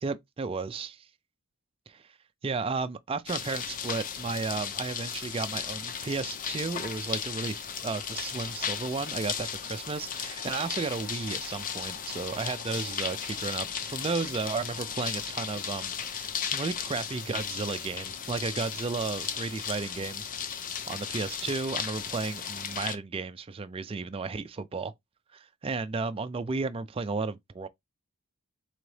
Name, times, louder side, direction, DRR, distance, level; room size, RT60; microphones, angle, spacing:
voice 1, 0.0-1.1 1.9-2.0 2.4-20.2 20.9-24.9 25.3-27.7, right 4 dB, 25° right, 0.3 m, -33 dB
sound 1, 3.3-23.0, left 7 dB, 40° left, 0.5 m, -35 dB
3.9 x 3.5 x 3.2 m
head